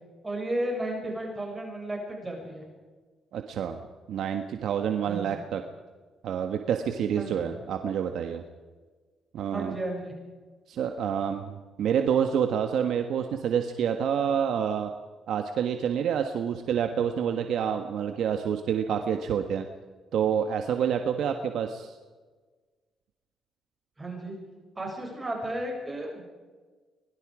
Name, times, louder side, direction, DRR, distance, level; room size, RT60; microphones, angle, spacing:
voice 1, 0.2-2.6 5.1-5.4 7.2-7.5 9.5-10.1 24.0-24.3 24.8-26.2, right 1 dB, 20° right, 0 dB, 7.0 m, -33 dB
voice 2, 3.3-3.8 4.1-5.6 6.2-8.4 9.3-9.7 10.7-11.5 11.8-14.9 15.3-19.7 20.1-22.0, right 8 dB, 75° right, 6 dB, 1.4 m, -28 dB
25.0 x 21.0 x 5.0 m, 1.4 s
cardioid pair, 90°, 0 cm